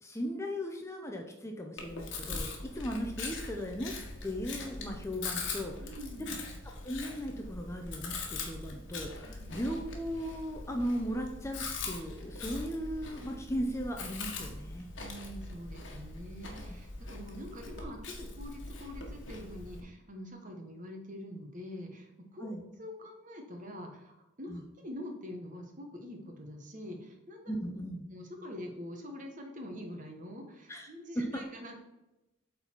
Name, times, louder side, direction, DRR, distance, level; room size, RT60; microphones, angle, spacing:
voice 1, 0.0-3.9 4.2-5.7 6.2-6.4 6.8-14.9 22.4-22.6 24.5-24.6 27.5-28.1 30.7-30.9 31.2-31.3, equal, 15° left, 2 dB, 0.6 m, -37 dB
Chewing mastication, 1.8-19.8, left 3 dB, 60° left, 1.4 m, -42 dB
voice 2, 5.8-6.4 9.3-9.6 15.0-22.5 22.8-27.5 28.1-31.8, left 1 dB, 40° right, 3 dB, 1.3 m, -45 dB
8.4 x 4.1 x 4.5 m, 0.99 s
head